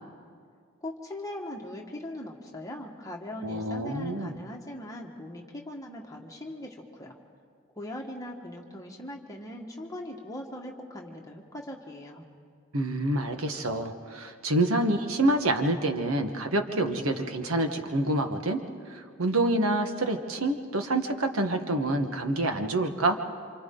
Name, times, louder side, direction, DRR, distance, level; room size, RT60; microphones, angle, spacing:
voice 1, 0.8-7.2 7.7-12.3, left 1 dB, 15° left, 0 dB, 1.7 m, -40 dB
voice 2, 3.4-4.4 12.7-18.6 18.9-23.2, right 1 dB, 80° right, 6 dB, 1.4 m, -27 dB
28.5 x 26.5 x 3.9 m, 2.1 s
head